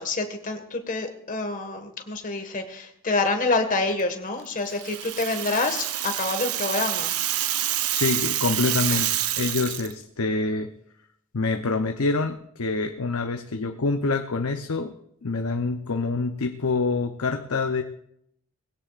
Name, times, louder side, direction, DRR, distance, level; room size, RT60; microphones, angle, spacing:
voice 1, 0.0-7.1, left 3 dB, 35° left, 5 dB, 1.7 m, -27 dB
Rattle (instrument), 4.7-9.9, right 12 dB, 85° right, 0.8 m, -27 dB
voice 2, 7.9-10.7 11.3-14.9 15.2-17.8, left 3 dB, 75° left, 5 dB, 0.8 m, -26 dB
20.5 x 16.5 x 2.5 m, 0.73 s
head